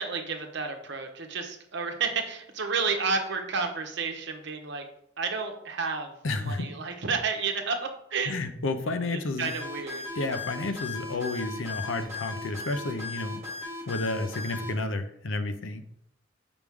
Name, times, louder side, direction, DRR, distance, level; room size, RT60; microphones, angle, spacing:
voice 1, 0.0-4.8 5.2-6.1 6.4-8.3 9.1-10.0, right 4 dB, 65° right, 4 dB, 1.0 m, -31 dB
voice 2, 6.2-6.7 8.3-9.5 10.1-13.4 13.9-15.8, left 2 dB, 80° left, 8 dB, 0.7 m, -31 dB
sound 1, 9.4-14.7, left 3 dB, 15° right, 2.8 m, -37 dB
6.2 x 5.0 x 3.5 m, 0.71 s
head